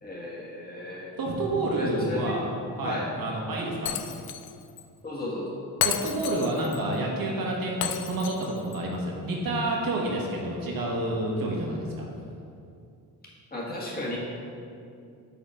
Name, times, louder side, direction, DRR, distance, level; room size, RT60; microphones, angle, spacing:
voice 1, 0.0-1.1 1.7-2.4 2.8-3.1 5.0-5.6 13.5-14.2, left 1 dB, 25° left, -5 dB, 1.5 m, -34 dB
voice 2, 1.2-2.4 2.8-3.9 5.8-12.1, right 1 dB, 60° right, -1 dB, 1.5 m, -29 dB
Shatter, 3.9-4.5 4.8-4.9 5.8-6.8 7.8-8.8, left 10 dB, 70° left, 0.5 m, -31 dB
5.7 x 3.8 x 5.6 m, 2.5 s
supercardioid pair, 70°, 39 cm